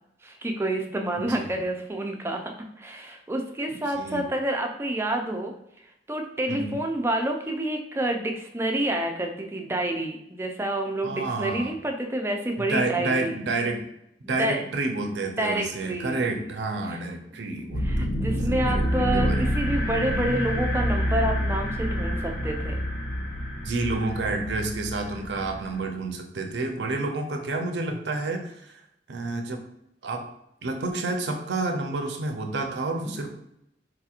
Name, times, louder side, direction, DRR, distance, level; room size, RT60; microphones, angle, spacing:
voice 1, 0.2-5.5 6.1-13.3 14.2-14.6 15.4-16.2 16.9-17.0 17.8-22.8 33.1-33.3, right 1 dB, 15° right, 2 dB, 0.4 m, -28 dB
voice 2, 1.2-1.5 3.9-4.2 6.5-6.8 11.0-11.7 12.6-13.8 14.3-18.1 18.5-19.5 23.6-28.8 29.1-29.6 30.0-30.2 30.6-33.3, right 3 dB, 80° right, 4 dB, 0.6 m, -29 dB
sound 1, 17.7-25.8, equal, 55° left, 0.9 m, -27 dB
4.0 x 2.8 x 2.4 m, 0.81 s
head